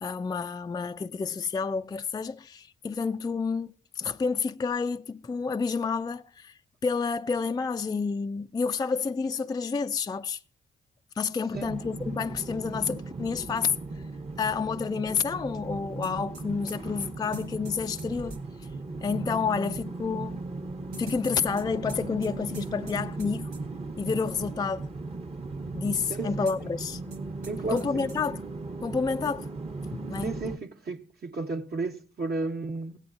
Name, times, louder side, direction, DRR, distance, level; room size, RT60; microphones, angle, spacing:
voice 1, 0.0-10.4 11.2-13.8 14.4-18.4 19.0-20.4 21.0-23.5 24.0-24.9 25.7-27.0 27.7-28.4 28.8-29.5 29.9-30.3, left 5 dB, 20° left, 0.4 m, -29 dB
sound 1, 11.5-30.6, right 3 dB, 30° right, 1.0 m, -37 dB
sound 2, 16.0-18.4 20.9-23.3 23.5-23.6 26.5-27.2 27.4-27.5 27.8-28.2, right 4 dB, 90° right, 1.3 m, -45 dB
voice 2, 26.1-26.7 27.5-28.1 30.2-33.0, right 3 dB, 50° right, 1.1 m, -33 dB
16.5 x 8.9 x 2.5 m
hypercardioid pair, 40°, 21 cm